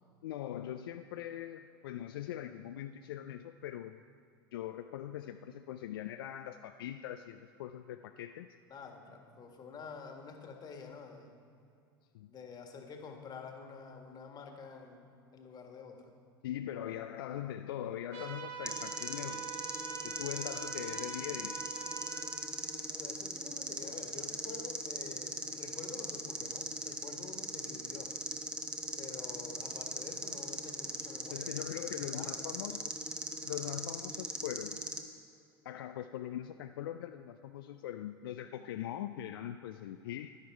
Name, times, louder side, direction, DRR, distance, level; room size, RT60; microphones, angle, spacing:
voice 1, 0.2-4.0 4.5-8.5 12.1-12.3 16.4-19.5 20.0-21.6 31.3-32.9 33.4-34.8 35.6-40.4, left 11 dB, 70° left, 8 dB, 0.4 m, -41 dB
voice 2, 8.7-11.3 12.3-16.1 22.9-28.1 29.0-31.7 32.1-32.6, left 5 dB, 30° left, 4 dB, 1.6 m, -48 dB
sound 1, 18.1-22.3, right 5 dB, 55° right, 1.4 m, -44 dB
sound 2, 18.7-35.0, right 1 dB, 5° right, 1.0 m, -40 dB
11.0 x 11.0 x 4.7 m, 2.5 s
hypercardioid pair, 85°, 13 cm